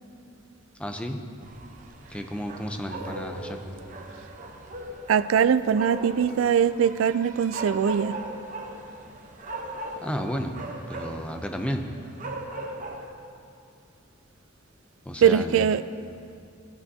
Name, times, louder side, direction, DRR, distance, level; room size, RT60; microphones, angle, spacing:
voice 1, 0.8-1.2 2.1-3.6 10.0-10.5 10.9-11.9 15.1-15.7, equal, 5° left, 4 dB, 0.5 m, -32 dB
sound 1, 1.4-13.1, right 2 dB, 40° right, 0.8 m, -39 dB
voice 2, 5.1-8.2 15.2-15.8, right 7 dB, 75° right, 14 dB, 0.3 m, -21 dB
16.5 x 9.5 x 2.7 m, 2.6 s
head